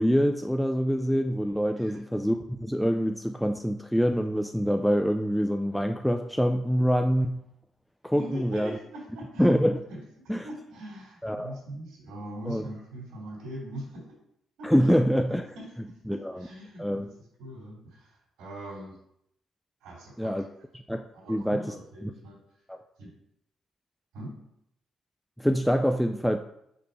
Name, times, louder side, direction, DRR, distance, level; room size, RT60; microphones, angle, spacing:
voice 1, 0.0-7.4 8.0-8.8 9.4-9.8 10.3-10.5 11.2-11.5 12.5-12.6 14.6-15.5 16.1-16.5 16.8-17.1 20.2-20.5 20.9-21.8 22.0-22.1 22.7-22.8 25.4-26.4, equal, ahead, 5 dB, 0.4 m, -25 dB
voice 2, 8.2-9.5 9.9-10.0 10.4-14.0 14.6-14.9 15.5-17.1 17.4-19.0 19.8-20.4 21.1-22.4 23.0-23.1 24.1-24.3, right 1 dB, 85° right, -5 dB, 2.8 m, -42 dB
5.2 x 4.3 x 5.5 m, 0.75 s
cardioid pair, 90°, 0 cm